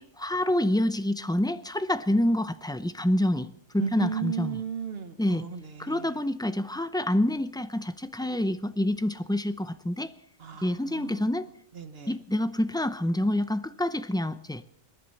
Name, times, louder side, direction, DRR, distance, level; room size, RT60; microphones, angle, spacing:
voice 1, 0.0-4.6 5.2-5.5 5.8-10.1 10.6-11.5 12.1-14.6, left 1 dB, 5° left, 11 dB, 0.3 m, -27 dB
voice 2, 3.8-6.1 10.4-11.2 11.7-12.1, right 7 dB, 55° right, 9 dB, 1.5 m, -35 dB
26.5 x 11.0 x 4.2 m, 0.77 s
omnidirectional pair, 1.2 m